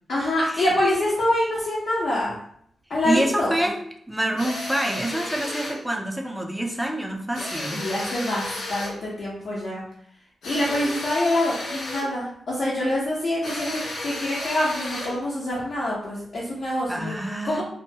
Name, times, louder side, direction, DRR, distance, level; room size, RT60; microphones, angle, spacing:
voice 1, 0.1-2.3 2.9-3.6 7.7-8.4 8.7-9.8 10.5-17.1 17.4-17.6, left 1 dB, 60° left, -7 dB, 0.7 m, -25 dB
voice 2, 3.0-3.8 4.1-7.8 16.9-17.6, right 1 dB, 5° right, 2 dB, 0.3 m, -27 dB
sound 1, 4.4-5.8 7.3-9.0 10.4-12.2 13.4-15.2, left 1 dB, 90° left, 0.7 m, -33 dB
2.8 x 2.2 x 2.7 m, 0.67 s
wide cardioid pair, 155°, 0 cm